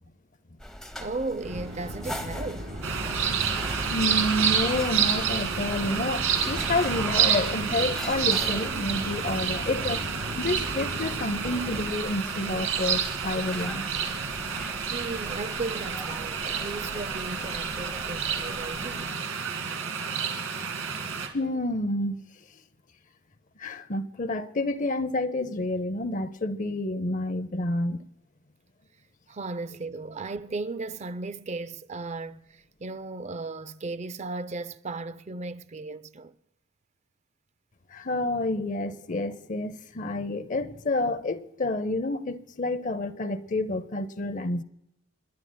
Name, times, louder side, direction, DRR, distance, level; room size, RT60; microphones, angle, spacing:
sound 1, 0.6-19.1, equal, 5° left, 0.8 m, -43 dB
voice 1, 1.0-2.7 14.9-19.2 29.3-36.3, right 3 dB, 30° right, 0.4 m, -36 dB
sound 2, 1.4-11.9, equal, 60° right, 6.0 m, -38 dB
sound 3, 2.8-21.3, right 7 dB, 75° right, 2.2 m, -29 dB
voice 2, 3.9-10.1 10.4-13.8 21.3-22.2 23.6-28.0 37.9-44.6, left 2 dB, 35° left, 0.6 m, -29 dB
28.0 x 11.5 x 2.2 m
head